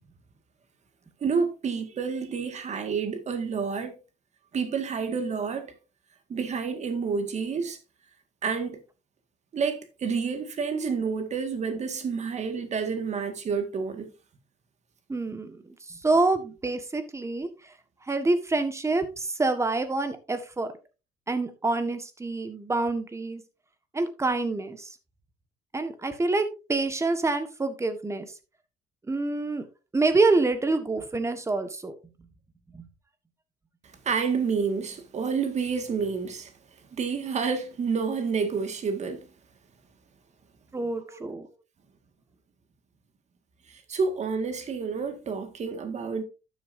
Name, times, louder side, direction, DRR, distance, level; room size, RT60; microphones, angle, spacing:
voice 1, 1.2-4.0 4.5-5.7 6.3-7.8 8.4-8.8 9.5-14.1 34.1-36.5 36.9-39.3 41.1-41.2 43.7-46.2, right 5 dB, 40° right, 1.9 m, -29 dB
voice 2, 15.1-17.5 18.1-20.7 21.3-23.4 23.9-24.9 25.7-28.3 29.1-29.7 29.9-31.9 32.7-32.9 40.7-41.5, right 3 dB, 15° right, 1.5 m, -27 dB
12.0 x 7.1 x 2.7 m
cardioid pair, 110°, 17 cm